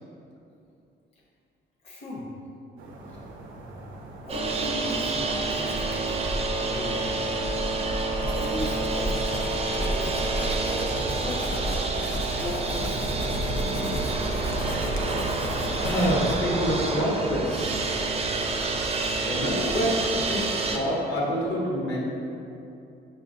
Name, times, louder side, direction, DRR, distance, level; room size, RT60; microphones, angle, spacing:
voice 1, 1.8-2.3 4.2-7.1 8.3-9.6 10.0-10.1 11.1-11.4 12.3-13.0, left 1 dB, 30° left, -5 dB, 0.6 m, -37 dB
sound 1, 2.8-9.6, right 2 dB, 85° right, 0.5 m, -43 dB
sound 2, 4.3-20.8, right 3 dB, 30° right, 0.4 m, -28 dB
Writing, 8.2-16.4, left 1 dB, 90° left, 0.5 m, -34 dB
voice 2, 15.4-17.9 19.2-22.1, equal, 65° left, -4 dB, 1.0 m, -27 dB
5.4 x 2.4 x 2.5 m, 2.7 s
cardioid pair, 90°, 20 cm